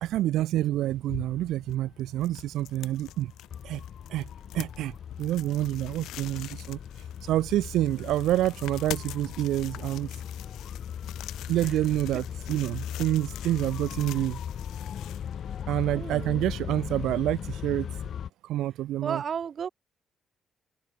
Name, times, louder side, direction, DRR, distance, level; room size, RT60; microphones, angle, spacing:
voice 1, 0.0-3.3 3.6-3.8 4.1-4.3 4.5-10.2 11.5-14.4 15.7-17.9 18.4-19.2, right 14 dB, 85° right, 0.5 m, -28 dB
sound 1, 0.7-15.9, left 14 dB, 85° left, 3.6 m, -45 dB
sound 2, 1.2-18.3, left 8 dB, 60° left, 0.5 m, -39 dB
voice 2, 15.9-16.4 19.0-19.7, right 7 dB, 50° right, 1.9 m, -33 dB
cardioid pair, 90°, 0 cm